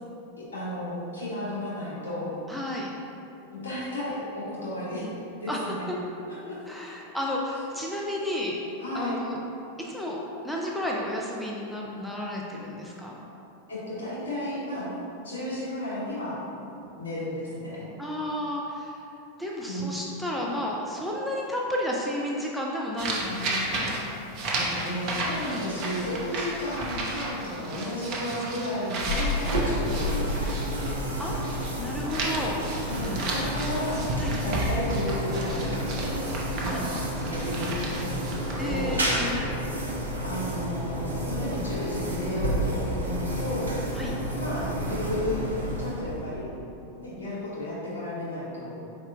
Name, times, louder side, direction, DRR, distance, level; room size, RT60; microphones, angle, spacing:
voice 1, 0.5-2.4 3.5-5.1 5.4-5.9 6.3-6.6 8.8-9.2 13.7-14.9 15.2-16.4 17.0-17.9 19.6-20.0 24.5-31.5 32.7-34.0 34.4-36.2 36.6-36.9 37.2-38.9 40.2-43.7 44.4-45.4 45.8-46.5 47.0-48.8, left 1 dB, 70° left, -8 dB, 1.4 m, -33 dB
voice 2, 2.5-2.9 5.5-6.0 6.7-8.6 8.9-9.4 9.8-13.2 18.0-19.0 19.4-24.0 25.4-25.6 31.2-32.6 34.2-34.4 36.6-36.9 38.6-39.6 43.9-44.1, left 1 dB, ahead, -4 dB, 0.4 m, -32 dB
sound 1, 23.0-31.7 32.0-39.0, right 2 dB, 40° right, 0.7 m, -33 dB
sound 2, 29.0-46.4, equal, 75° right, 0.6 m, -30 dB
4.3 x 4.2 x 2.5 m, 2.7 s
figure-of-eight pair, 90°, 0 cm